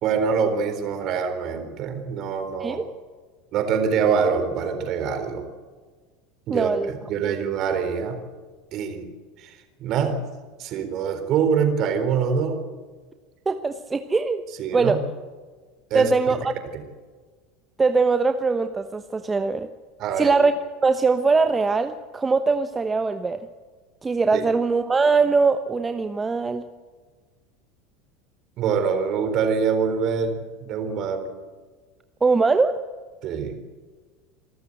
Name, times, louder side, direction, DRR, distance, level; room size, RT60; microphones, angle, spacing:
voice 1, 0.0-2.8 3.5-5.4 6.5-8.2 8.7-9.1 9.4-10.2 10.6-12.6 14.6-15.0 15.9-16.4 20.0-20.4 24.3-24.4 28.6-31.3 33.2-33.6, right 6 dB, 45° right, 7 dB, 4.0 m, -24 dB
voice 2, 6.5-6.9 13.5-14.4 14.7-15.0 15.9-16.5 17.8-19.7 20.2-20.5 20.8-23.4 24.0-26.6 32.2-32.8, right 4 dB, 20° right, 9 dB, 1.0 m, -21 dB
27.0 x 14.0 x 8.0 m, 1.5 s
figure-of-eight pair, 75°, 0 cm